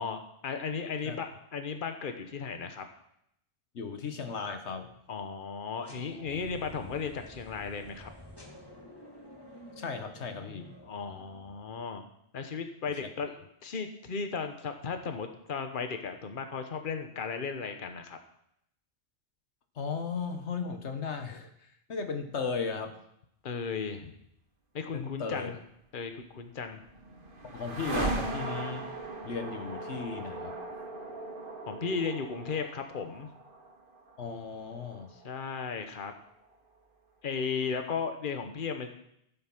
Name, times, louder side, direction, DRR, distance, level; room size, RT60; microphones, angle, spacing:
voice 1, 0.0-2.8 5.1-8.1 10.8-12.0 12.3-18.2 23.4-24.1 24.7-25.6 25.9-26.8 31.7-33.3 35.2-36.1 37.2-38.9, left 5 dB, 50° left, 7 dB, 1.2 m, -35 dB
voice 2, 3.7-5.0 9.8-10.7 12.9-13.0 19.7-23.0 24.9-25.5 27.4-28.9 29.2-30.6 34.2-35.1, left 5 dB, 90° left, 7 dB, 1.4 m, -36 dB
sound 1, 5.8-11.8, equal, 20° left, 2.0 m, -50 dB
sound 2, 26.4-36.5, right 2 dB, 55° right, 1.7 m, -39 dB
13.5 x 8.0 x 6.0 m, 0.75 s
omnidirectional pair, 1.1 m